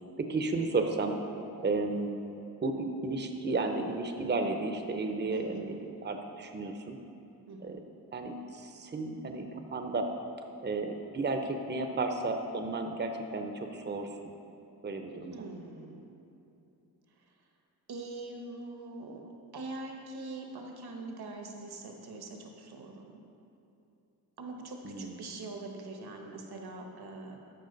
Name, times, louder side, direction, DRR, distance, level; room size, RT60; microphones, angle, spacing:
voice 1, 0.2-1.2 1.6-2.1 2.6-7.0 7.6-7.8 8.1-10.1 10.6-14.1 14.8-15.4 24.8-25.3, right 3 dB, 25° right, 5 dB, 0.7 m, -33 dB
voice 2, 5.3-5.7 7.5-7.8 15.3-16.0 17.9-23.2 24.4-27.4, right 2 dB, 70° right, 2 dB, 1.2 m, -43 dB
13.0 x 4.9 x 3.9 m, 2.8 s
cardioid pair, 65°, 40 cm